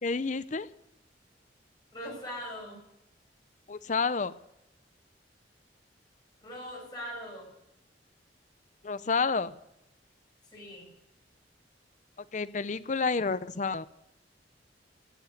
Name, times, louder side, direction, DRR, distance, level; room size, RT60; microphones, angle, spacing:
voice 1, 0.0-0.7 3.7-4.3 8.8-9.6 12.3-13.9, left 4 dB, 40° left, 13 dB, 0.6 m, -29 dB
voice 2, 1.9-2.8 6.4-7.5 10.5-10.9, equal, 25° left, -3 dB, 6.7 m, -40 dB
17.0 x 8.4 x 8.0 m, 0.85 s
head